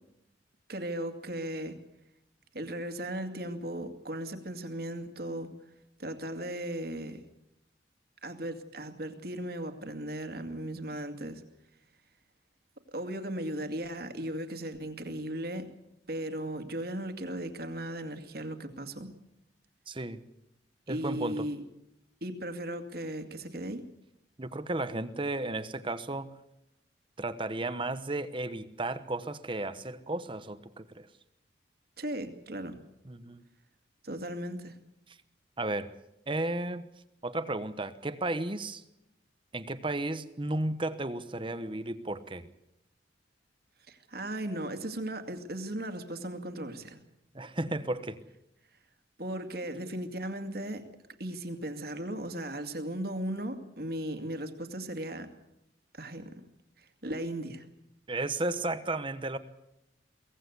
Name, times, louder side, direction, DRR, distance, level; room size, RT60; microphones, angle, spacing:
voice 1, 0.7-1.8 2.5-5.5 6.0-7.2 8.2-11.4 12.9-15.7 16.1-19.1 20.9-21.6 22.2-23.8 32.0-32.8 34.0-34.8 43.9-47.0 49.2-50.8 51.2-55.3 55.9-56.3 56.8-57.6, right 1 dB, 55° right, 7 dB, 2.3 m, -37 dB
voice 2, 19.9-20.2 20.9-21.5 24.4-26.4 27.2-31.1 33.0-33.4 35.6-35.9 36.3-36.9 37.2-38.8 39.5-42.5 47.3-48.2 58.1-59.4, right 2 dB, 30° right, 12 dB, 1.0 m, -34 dB
23.5 x 17.5 x 8.2 m, 0.85 s
head